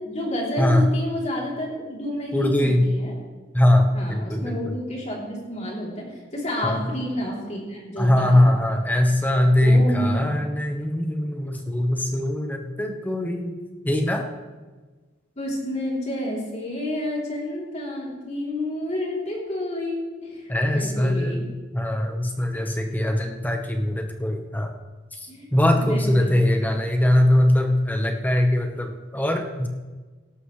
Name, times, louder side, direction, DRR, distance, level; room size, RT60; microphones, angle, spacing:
voice 1, 0.0-3.2 3.9-8.6 9.5-10.4 15.4-21.4 25.3-25.5 25.7-26.4, left 1 dB, 35° left, -3 dB, 3.4 m, -30 dB
voice 2, 0.6-0.9 2.3-2.9 3.5-4.7 6.6-6.9 8.0-13.6 13.8-14.3 20.5-24.7 25.2-29.7, left 1 dB, 10° left, 4 dB, 1.2 m, -21 dB
17.5 x 12.5 x 3.3 m, 1.3 s
head